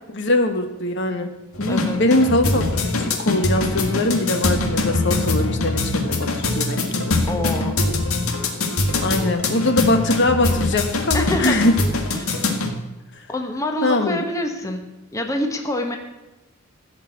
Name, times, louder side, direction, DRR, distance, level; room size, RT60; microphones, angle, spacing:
voice 1, 0.1-1.3 1.6-7.2 9.0-11.7 13.8-14.2, left 2 dB, 55° left, 7 dB, 1.2 m, -22 dB
sound 1, 1.5-12.7, left 2 dB, 80° left, 1.8 m, -23 dB
voice 2, 1.7-2.0 7.3-7.8 11.1-11.7 12.1-12.5 13.3-14.8 15.1-16.0, left 1 dB, 15° left, 4 dB, 1.1 m, -26 dB
15.5 x 5.5 x 7.9 m, 1.1 s
head